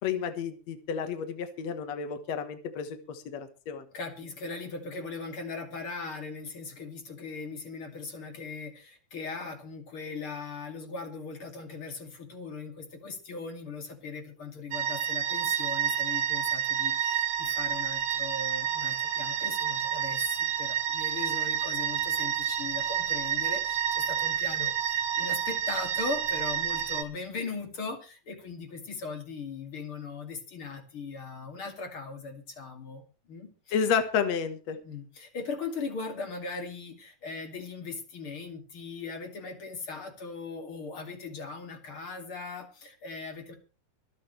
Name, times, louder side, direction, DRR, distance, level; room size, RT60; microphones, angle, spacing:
voice 1, 0.0-3.9 33.7-34.8, left 7 dB, 65° left, 8 dB, 2.5 m, -31 dB
voice 2, 3.9-33.8 34.8-43.6, left 4 dB, 45° left, 4 dB, 3.2 m, -39 dB
sound 1, 14.7-27.0, right 9 dB, 60° right, 2.2 m, -29 dB
25.0 x 9.0 x 3.3 m, 0.33 s
omnidirectional pair, 3.4 m